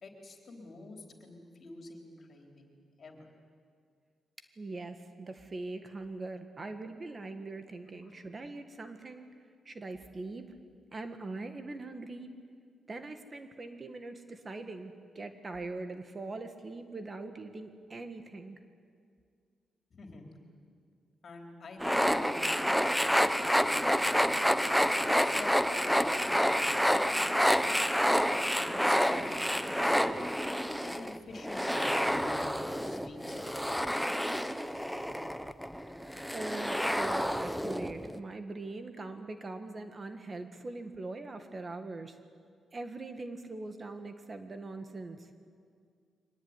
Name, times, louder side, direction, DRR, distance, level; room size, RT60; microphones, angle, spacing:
voice 1, 0.0-3.3 8.0-8.1 19.9-20.3 21.2-24.4 24.9-25.5 25.8-28.0 28.6-30.2 30.8-34.0, left 2 dB, 45° left, 2 dB, 4.0 m, -49 dB
voice 2, 4.6-9.3 9.7-10.6 10.9-12.3 12.9-18.6 36.3-42.2 42.7-45.3, right 2 dB, 30° right, 7 dB, 1.7 m, -42 dB
sound 1, 21.8-38.2, equal, ahead, 0.8 m, -29 dB
23.5 x 19.5 x 9.8 m, 2.1 s
cardioid pair, 110°, 0 cm